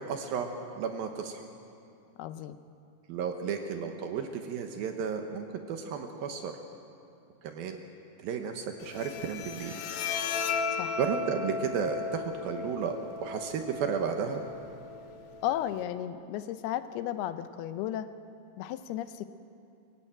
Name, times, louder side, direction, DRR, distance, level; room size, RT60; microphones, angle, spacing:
voice 1, 0.0-1.4 3.1-6.5 7.4-7.8 8.2-9.7 11.0-14.4, right 6 dB, 75° right, 5 dB, 2.8 m, -33 dB
voice 2, 2.2-2.6 10.8-11.0 15.4-18.1 18.6-19.3, left 11 dB, 85° left, 11 dB, 2.7 m, -34 dB
Bowed string instrument, 8.8-15.8, left 5 dB, 70° left, 2.4 m, -36 dB
23.5 x 16.0 x 8.9 m, 2.5 s
omnidirectional pair, 4.4 m